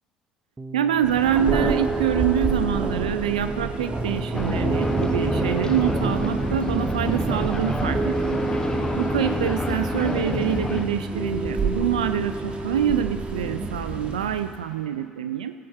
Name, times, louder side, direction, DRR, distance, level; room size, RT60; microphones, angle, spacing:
Piano, 0.6-13.7, right 3 dB, 15° right, 0.7 m, -31 dB
voice 1, 0.7-8.4 9.0-15.5, right 9 dB, 80° right, 10 dB, 0.4 m, -26 dB
Thunder, 1.0-14.6, right 3 dB, 30° right, 1.5 m, -30 dB
sound 1, 4.3-10.8, left 3 dB, 20° left, 1.1 m, -29 dB
17.0 x 8.6 x 4.5 m, 2.3 s
figure-of-eight pair, 60°, 4 cm